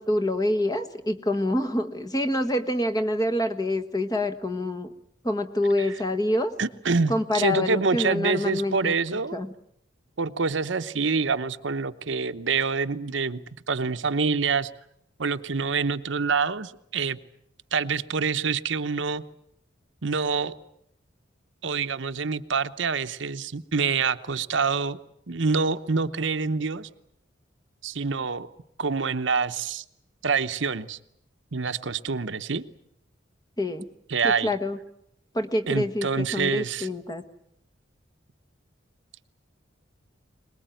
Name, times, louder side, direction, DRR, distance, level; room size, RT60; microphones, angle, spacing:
voice 1, 0.0-4.9 5.2-6.5 7.1-8.9 9.3-9.5 33.6-33.9 34.2-34.8 35.3-37.2, left 1 dB, 20° left, 9 dB, 1.3 m, -26 dB
voice 2, 6.6-9.4 10.2-13.4 13.7-14.7 15.2-17.2 17.7-19.2 20.0-20.5 21.6-25.0 25.3-26.9 27.8-28.5 28.8-29.8 30.2-31.0 31.5-32.6 34.1-34.5 35.7-36.9, right 5 dB, 70° right, 10 dB, 0.9 m, -26 dB
22.5 x 20.5 x 9.1 m, 0.75 s
head